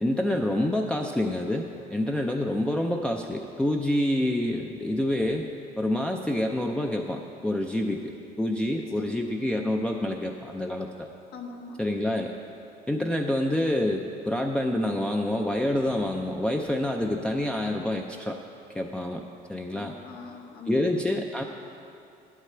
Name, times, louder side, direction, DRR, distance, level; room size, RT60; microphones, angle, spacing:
voice 1, 0.0-5.5 5.8-8.1 8.4-11.1 11.8-12.3 12.9-18.4 18.7-19.2 19.5-19.9 20.7-21.4, left 1 dB, 5° left, 0 dB, 0.4 m, -27 dB
voice 2, 11.3-12.2 19.7-20.8, left 4 dB, 80° left, 2 dB, 1.2 m, -43 dB
9.9 x 8.1 x 4.4 m, 2.6 s
cardioid pair, 110°, 17 cm